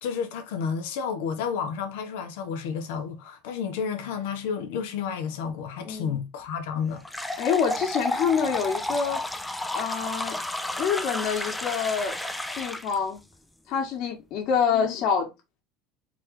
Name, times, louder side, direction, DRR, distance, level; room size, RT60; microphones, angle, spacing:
voice 1, 0.0-7.0 14.7-15.0, left 6 dB, 85° left, 1.2 m, -31 dB
voice 2, 5.9-6.2 7.4-9.2 9.7-10.4 10.8-12.1 12.6-13.2 13.7-15.3, left 6 dB, 50° left, 1.6 m, -26 dB
sound 1, 7.0-13.0, left 1 dB, 5° left, 0.4 m, -32 dB
4.2 x 3.2 x 3.7 m
cardioid pair, 165°, 0 cm